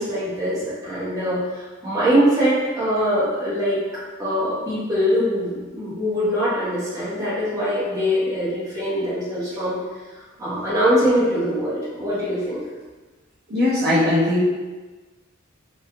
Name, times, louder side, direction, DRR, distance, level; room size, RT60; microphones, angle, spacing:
voice 1, 0.0-3.8 4.2-9.8 10.4-12.6, equal, 15° right, -11 dB, 1.2 m, -22 dB
voice 2, 13.5-14.4, left 1 dB, 50° right, -9 dB, 0.7 m, -19 dB
3.3 x 3.1 x 2.3 m, 1.3 s
head